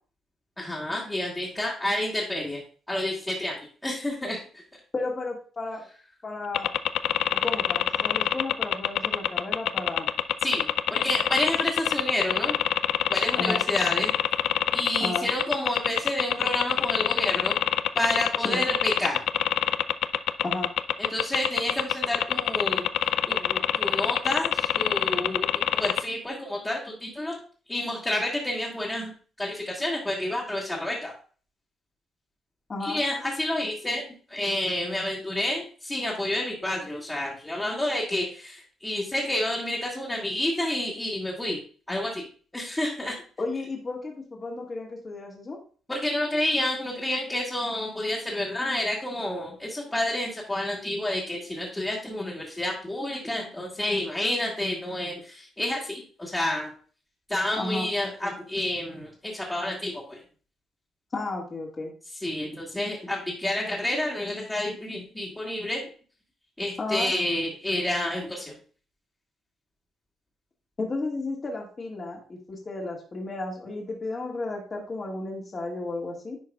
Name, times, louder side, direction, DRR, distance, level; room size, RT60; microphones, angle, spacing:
voice 1, 0.6-2.6 2.9-4.6 10.4-12.5 13.1-14.1 14.7-17.6 17.9-19.2 21.0-22.9 23.3-27.4 27.7-31.1 32.8-41.6 41.9-42.2 42.5-43.2 45.9-56.7 57.3-60.2 62.1-65.8 66.6-68.6, left 1 dB, 15° left, -6 dB, 1.8 m, -29 dB
voice 2, 4.9-5.8 6.2-6.7 7.4-10.1 13.4-13.6 15.0-15.3 18.4-18.6 20.4-20.7 32.7-33.0 43.4-45.6 57.6-57.9 61.1-61.9 66.8-67.1 70.8-76.4, left 2 dB, 35° left, -1 dB, 1.9 m, -33 dB
sound 1, 6.5-26.0, left 11 dB, 80° left, 0.3 m, -24 dB
10.0 x 4.6 x 2.3 m, 0.40 s
cardioid pair, 90°, 0 cm